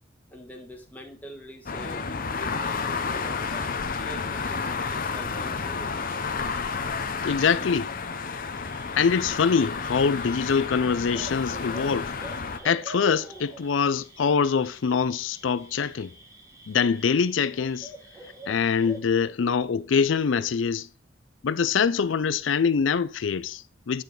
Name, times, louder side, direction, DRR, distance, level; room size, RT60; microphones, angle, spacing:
voice 1, 0.3-2.0 2.3-6.1, equal, 10° left, 1.5 m, -43 dB
sound 1, 1.7-12.6, left 5 dB, 50° left, 0.8 m, -31 dB
voice 2, 7.2-7.9 9.0-12.1 12.6-16.1 16.7-17.9 18.5-20.9 21.4-24.0, left 6 dB, 85° left, 0.5 m, -24 dB
sound 2, 8.5-19.0, right 2 dB, 20° right, 1.3 m, -46 dB
9.1 x 4.9 x 3.8 m
head